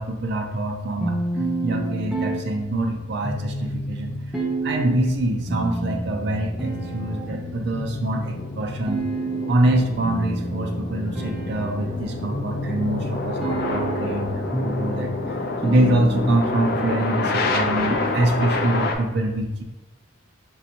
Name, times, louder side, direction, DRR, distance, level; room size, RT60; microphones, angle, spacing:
voice 1, 0.0-4.4 4.6-9.0 9.5-19.6, right 1 dB, 55° right, 2 dB, 0.4 m, -25 dB
sound 1, 1.0-19.0, right 1 dB, 5° right, 0.5 m, -31 dB
sound 2, 3.0-19.0, left 2 dB, 50° left, 0.4 m, -30 dB
5.4 x 2.5 x 2.8 m, 1.1 s
head